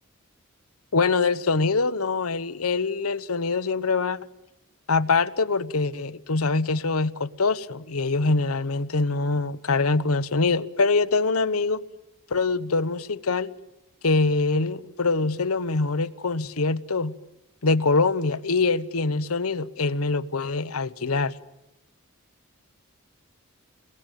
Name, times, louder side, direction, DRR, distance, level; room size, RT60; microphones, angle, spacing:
voice 1, 0.9-4.2 4.9-11.8 12.3-13.5 14.0-17.1 17.6-21.3, left 3 dB, 85° left, 1.1 m, -24 dB
30.0 x 21.5 x 9.2 m
head